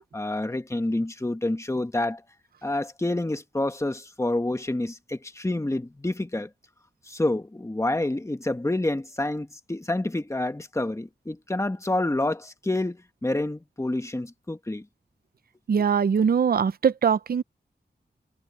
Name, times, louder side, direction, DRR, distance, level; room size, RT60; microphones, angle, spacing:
voice 1, 0.1-2.2 2.6-6.5 7.1-14.8, left 2 dB, 15° left, 1.5 m, -28 dB
voice 2, 15.7-17.4, right 7 dB, 55° right, 0.6 m, -22 dB
wide cardioid pair, 85°, 18 cm